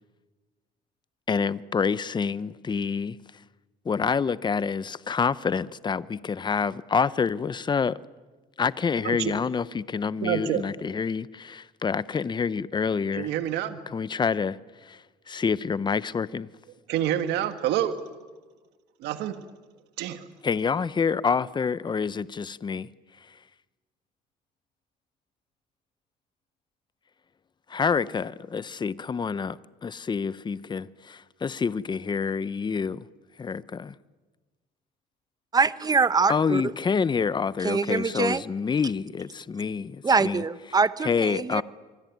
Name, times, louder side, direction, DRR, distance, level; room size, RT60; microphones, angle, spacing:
voice 1, 1.3-3.2 3.8-8.0 8.6-13.3 13.9-14.6 14.9-15.0 15.3-16.5 20.4-22.9 27.7-33.1 33.4-33.9 36.3-40.4 41.0-41.6, left 5 dB, 25° left, 0.8 m, -27 dB
voice 2, 10.2-10.6 13.1-13.8 16.9-18.0 19.0-19.4 20.0-20.3, right 11 dB, 85° right, 1.7 m, -27 dB
voice 3, 35.5-36.6 37.6-38.4 40.0-41.6, right 4 dB, 20° right, 1.0 m, -24 dB
26.0 x 24.0 x 9.3 m
cardioid pair, 110°, 17 cm